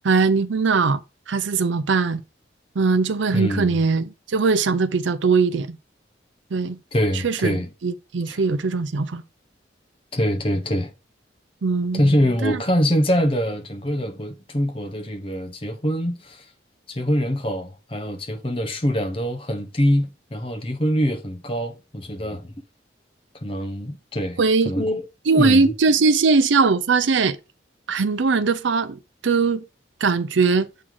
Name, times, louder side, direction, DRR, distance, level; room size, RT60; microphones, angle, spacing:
voice 1, 0.0-1.0 1.3-2.2 2.8-5.8 6.5-6.8 7.2-9.2 11.6-12.0 12.4-12.6 24.4-24.7 25.3-27.4 27.9-29.6 30.0-30.7, right 4 dB, 75° right, 0.5 m, -20 dB
voice 2, 3.3-3.8 6.9-7.7 8.3-8.4 10.1-10.9 11.9-16.5 16.9-22.5 23.4-24.4 24.6-25.1 25.4-25.7, equal, 30° left, 0.9 m, -24 dB
7.4 x 4.6 x 3.8 m
head